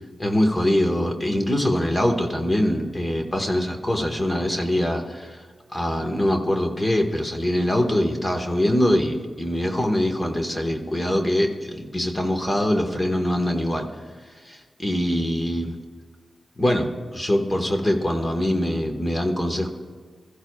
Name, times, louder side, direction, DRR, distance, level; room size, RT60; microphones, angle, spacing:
voice 1, 0.2-5.5 5.7-13.9 14.4-15.7 16.6-19.7, left 1 dB, 25° left, 3 dB, 1.4 m, -23 dB
22.5 x 14.5 x 2.4 m, 1.5 s
cardioid pair, 75°, 0 cm